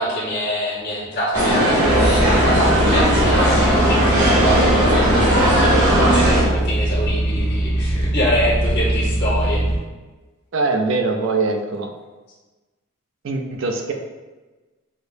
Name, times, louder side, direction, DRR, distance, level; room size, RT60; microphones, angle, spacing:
voice 1, 0.0-9.6, equal, 50° left, -8 dB, 1.1 m, -25 dB
sound 1, 1.3-6.4, equal, 75° right, 1.4 m, -17 dB
sound 2, 1.8-9.8, right 1 dB, 20° left, 1.0 m, -21 dB
voice 2, 10.5-11.9 13.2-13.9, right 3 dB, 60° right, 4 dB, 0.4 m, -22 dB
4.8 x 2.0 x 2.6 m, 1.2 s
head